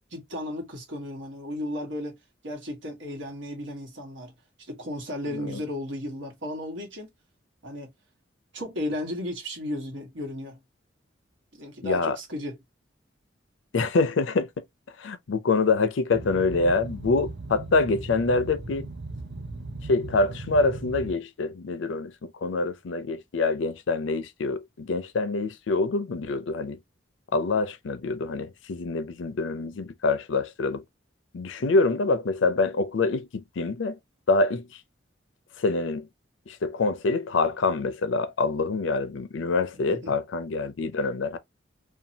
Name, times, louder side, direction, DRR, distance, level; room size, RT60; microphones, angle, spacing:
voice 1, 0.1-2.2 2.4-4.3 4.7-7.1 7.6-7.9 8.5-10.6 11.5-12.6 39.9-40.1, left 1 dB, 90° right, 1.3 m, -34 dB
voice 2, 11.8-12.2 13.7-14.5 15.0-18.9 19.9-26.8 27.3-30.8 31.3-34.0 34.3-34.8 35.6-36.1 36.5-41.4, left 3 dB, 90° left, 0.5 m, -26 dB
Boat Water vehicle, 16.1-21.1, right 2 dB, 65° right, 0.7 m, -38 dB
2.7 x 2.2 x 2.7 m
head